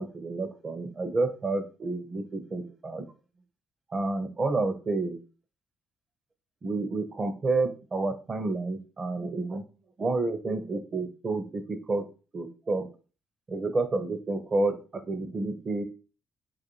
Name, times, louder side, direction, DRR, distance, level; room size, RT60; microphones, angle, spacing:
voice 1, 0.0-3.0 3.9-5.2 6.6-9.6 10.0-12.1 12.3-12.9 13.5-15.8, right 3 dB, 40° right, 8 dB, 0.5 m, -30 dB
2.4 x 2.3 x 3.0 m, 0.35 s
cardioid pair, 90°, 0 cm